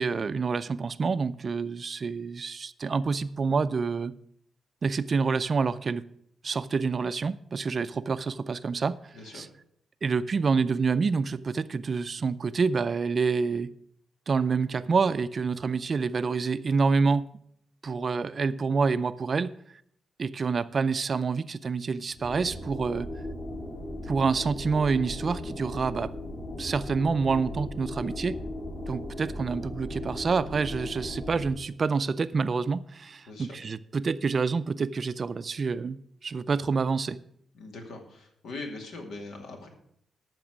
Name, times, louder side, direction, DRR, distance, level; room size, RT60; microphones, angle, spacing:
voice 1, 0.0-4.1 4.8-6.0 6.4-9.0 9.3-9.5 10.0-13.7 14.3-17.3 17.8-19.5 20.2-23.1 24.1-26.1 26.6-28.4 28.9-37.2, right 5 dB, 40° right, 0.4 m, -27 dB
voice 2, 9.1-9.5 33.3-33.6 37.5-39.7, left 3 dB, 85° left, 2.4 m, -41 dB
sound 1, 22.1-31.5, left 1 dB, 60° left, 6.0 m, -37 dB
13.5 x 6.0 x 6.2 m
wide cardioid pair, 140°, 0 cm